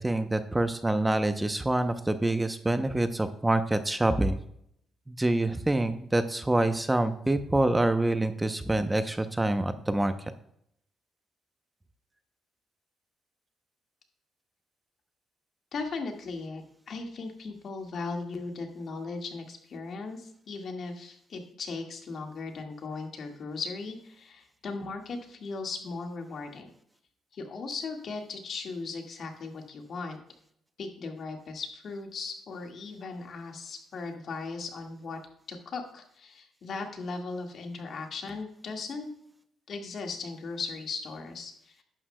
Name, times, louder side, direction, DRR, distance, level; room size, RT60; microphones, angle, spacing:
voice 1, 0.0-4.4 5.1-10.3, right 2 dB, 15° right, 9 dB, 0.6 m, -26 dB
voice 2, 15.7-26.7 27.3-30.2 30.8-35.2 35.5-39.1 39.7-41.8, left 4 dB, 55° left, 3 dB, 1.7 m, -37 dB
11.0 x 9.8 x 2.2 m, 0.72 s
cardioid pair, 90°, 0 cm